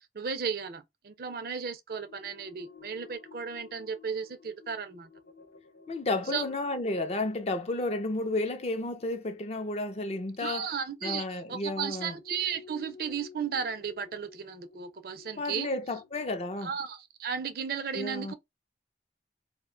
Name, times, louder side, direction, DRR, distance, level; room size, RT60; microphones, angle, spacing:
voice 1, 0.1-5.1 6.3-6.4 10.4-15.7 16.6-18.3, right 6 dB, 55° right, 0.4 m, -35 dB
sound 1, 1.9-11.1 12.1-16.6, left 5 dB, 80° left, 0.8 m, -54 dB
voice 2, 5.9-10.7 11.0-12.1 15.4-16.7 17.9-18.3, left 2 dB, 35° left, 0.4 m, -32 dB
2.5 x 2.1 x 3.6 m
head